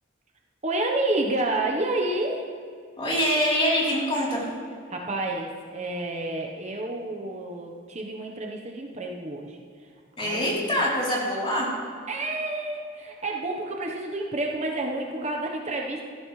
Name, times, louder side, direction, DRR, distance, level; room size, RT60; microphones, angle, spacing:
voice 1, 0.6-2.5 4.9-9.6 10.2-10.8 12.1-16.1, right 2 dB, 35° right, 1 dB, 1.0 m, -29 dB
voice 2, 3.0-4.5 10.2-11.7, equal, 30° left, -5 dB, 3.5 m, -24 dB
17.0 x 14.0 x 3.2 m, 2.2 s
head